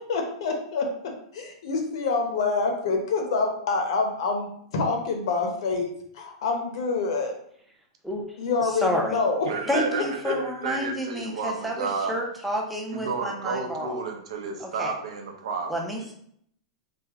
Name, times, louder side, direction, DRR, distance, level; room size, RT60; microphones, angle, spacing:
voice 1, 0.0-7.3 8.4-9.5 9.7-9.8 10.2-10.3, left 4 dB, 60° left, 3 dB, 0.7 m, -27 dB
voice 2, 8.6-9.2 9.7-14.0 14.6-14.9 15.7-16.1, equal, ahead, -1 dB, 0.4 m, -30 dB
voice 3, 9.4-12.2 12.9-15.7, right 4 dB, 80° right, 3 dB, 0.7 m, -31 dB
3.3 x 2.1 x 3.5 m, 0.68 s
supercardioid pair, 165°, 3 cm